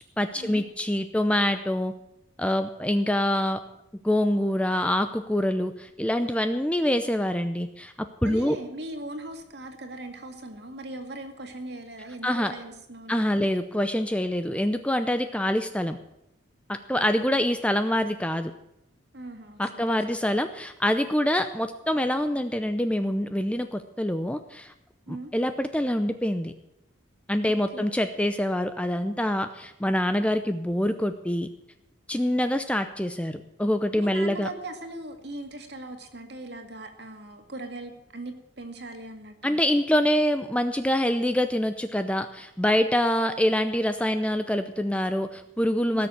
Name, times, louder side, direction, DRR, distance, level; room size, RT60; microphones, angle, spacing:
voice 1, 0.2-1.9 2.4-3.6 4.0-8.6 12.2-12.5 13.1-16.0 16.7-18.5 19.6-24.7 25.1-26.5 27.3-31.5 32.1-34.5 39.4-46.1, left 1 dB, 5° left, 9 dB, 0.6 m, -25 dB
voice 2, 8.2-13.2 16.9-17.4 19.1-20.2 25.1-25.3 27.7-28.0 32.1-32.4 33.9-39.6 45.9-46.1, right 1 dB, 55° right, 5 dB, 2.1 m, -40 dB
17.5 x 6.8 x 8.8 m, 0.83 s
head